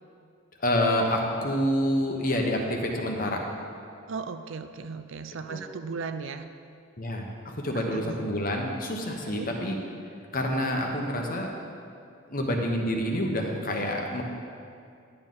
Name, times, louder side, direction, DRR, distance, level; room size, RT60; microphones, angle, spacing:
voice 1, 0.6-3.4 5.5-5.6 7.0-9.8 10.3-11.5 12.3-14.2, left 1 dB, 40° left, 1 dB, 1.1 m, -27 dB
voice 2, 4.1-6.5 7.7-8.3 9.3-9.5, right 4 dB, 65° right, 9 dB, 0.5 m, -37 dB
11.0 x 9.3 x 3.9 m, 2.4 s
head